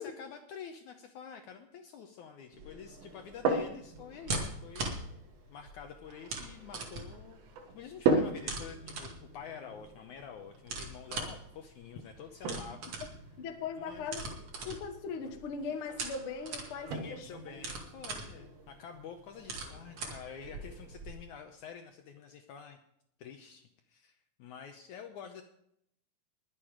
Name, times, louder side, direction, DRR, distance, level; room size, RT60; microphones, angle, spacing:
voice 1, 0.0-4.9 5.5-7.4 7.7-12.9 13.9-14.1 16.9-22.8 23.2-25.4, left 7 dB, 70° left, 5 dB, 2.0 m, -48 dB
sound 1, 2.5-21.1, right 3 dB, 45° right, 3.0 m, -43 dB
sound 2, 3.0-21.1, right 3 dB, 90° right, 3.4 m, -39 dB
voice 2, 13.4-14.3 14.6-17.3, left 5 dB, 55° left, 5 dB, 1.6 m, -39 dB
21.0 x 7.5 x 5.0 m, 0.72 s
omnidirectional pair, 4.1 m